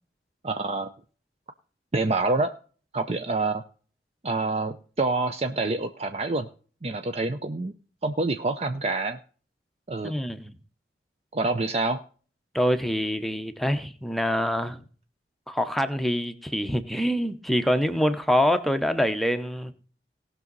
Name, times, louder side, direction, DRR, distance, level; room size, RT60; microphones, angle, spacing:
voice 1, 0.4-0.9 1.9-2.5 2.9-3.6 4.2-6.5 6.8-7.7 8.0-9.2 9.9-10.1 11.3-12.0, right 3 dB, 35° right, 0.6 m, -27 dB
voice 2, 10.0-10.6 12.5-14.8 15.5-19.7, equal, ahead, 0.8 m, -25 dB
18.5 x 6.2 x 4.0 m
head